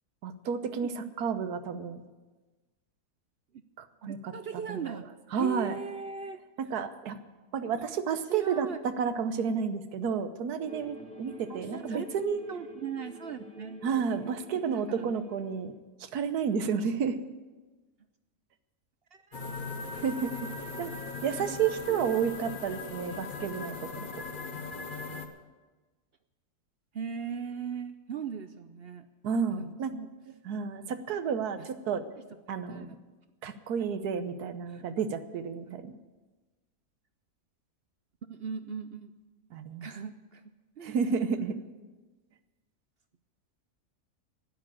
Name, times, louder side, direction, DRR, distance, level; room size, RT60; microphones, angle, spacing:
voice 1, 0.2-2.0 3.8-4.3 4.7-4.8 5.3-5.8 6.6-7.2 7.5-12.4 13.8-15.7 16.0-17.2 19.9-20.4 20.8-20.9 21.2-24.1 29.2-29.9 30.4-32.0 32.5-32.9 33.4-35.9 39.5-39.9 40.8-41.6, right 6 dB, 85° right, 10 dB, 1.4 m, -31 dB
voice 2, 4.0-5.1 5.4-6.4 7.7-7.8 8.3-8.8 11.5-12.1 12.5-13.8 14.5-15.2 19.1-19.4 20.6-20.7 21.4-21.6 21.9-22.2 26.9-29.1 29.5-30.1 30.8-31.0 31.6-31.7 32.1-32.2 32.6-32.9 34.7-34.8 35.7-35.8 38.2-39.1 39.8-40.4 40.8-41.0 41.4-41.7, right 6 dB, 60° right, 10 dB, 0.6 m, -39 dB
sound 1, 10.7-15.7, equal, 5° left, 1.8 m, -48 dB
sound 2, 19.3-25.3, left 3 dB, 35° left, 1.1 m, -39 dB
12.0 x 9.9 x 8.6 m, 1.2 s
omnidirectional pair, 1.6 m